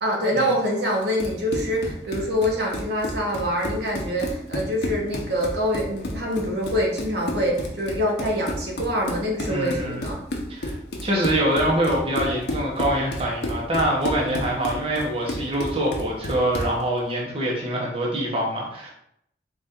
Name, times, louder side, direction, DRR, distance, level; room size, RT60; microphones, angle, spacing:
voice 1, 0.0-10.2, equal, 65° right, -1 dB, 0.8 m, -25 dB
Run, 1.0-16.8, left 1 dB, 65° left, 0.7 m, -31 dB
voice 2, 9.5-10.0 10.5-10.8 11.0-18.9, right 1 dB, 30° right, -3 dB, 0.8 m, -24 dB
4.1 x 2.4 x 3.5 m, 0.73 s
head